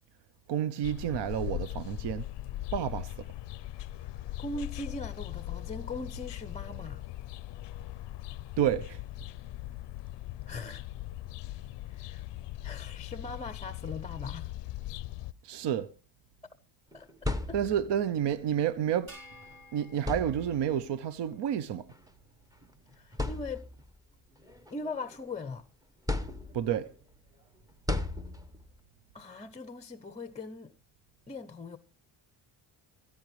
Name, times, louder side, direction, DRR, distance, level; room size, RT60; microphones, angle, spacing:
voice 1, 0.5-2.3 2.7-3.1 8.6-9.0 15.4-15.9 17.5-19.1 19.7-21.9 26.5-26.9, right 9 dB, 60° right, 0.8 m, -30 dB
sound 1, 0.8-15.3, left 15 dB, 65° left, 0.5 m, -40 dB
voice 2, 4.4-7.1 10.5-10.8 11.9-12.2 12.6-14.5 16.9-17.6 22.9-23.6 24.7-25.7 29.1-30.7 31.3-31.8, left 3 dB, 15° left, 0.6 m, -40 dB
sound 2, 16.9-18.1 19.3-19.5 20.0-20.8 21.9-22.1 22.6-22.7 23.1-23.9 24.4-25.5 26.1-26.9 27.9-28.8, left 2 dB, 10° right, 0.9 m, -35 dB
sound 3, 19.1-21.6, equal, 45° right, 4.1 m, -54 dB
15.5 x 14.0 x 3.1 m
cardioid pair, 145°, 47 cm